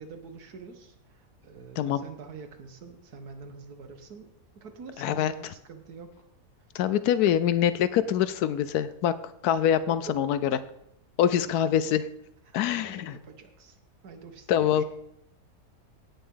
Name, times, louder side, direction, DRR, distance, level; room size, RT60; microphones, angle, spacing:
voice 1, 0.0-6.1 10.1-10.3 12.5-13.8 14.0-14.8, right 5 dB, 85° right, 7 dB, 1.8 m, -46 dB
voice 2, 5.0-5.3 6.7-9.1 9.4-10.5 11.2-12.1 12.5-13.2 14.5-14.8, left 10 dB, 85° left, 14 dB, 1.1 m, -24 dB
17.0 x 7.0 x 3.8 m, 0.77 s
omnidirectional pair, 1.6 m